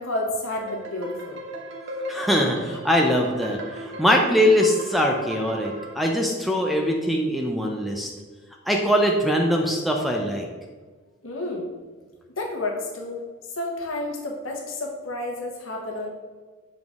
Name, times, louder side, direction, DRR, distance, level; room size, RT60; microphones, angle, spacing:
voice 1, 0.0-1.4 11.2-11.7 12.4-13.2 13.5-16.1, left 1 dB, 70° left, 0 dB, 1.2 m, -30 dB
sound 1, 0.5-6.0, equal, 55° right, 0.9 m, -37 dB
voice 2, 2.1-8.1 8.7-10.5, equal, ahead, 1 dB, 0.4 m, -22 dB
6.8 x 4.0 x 3.5 m, 1.4 s
head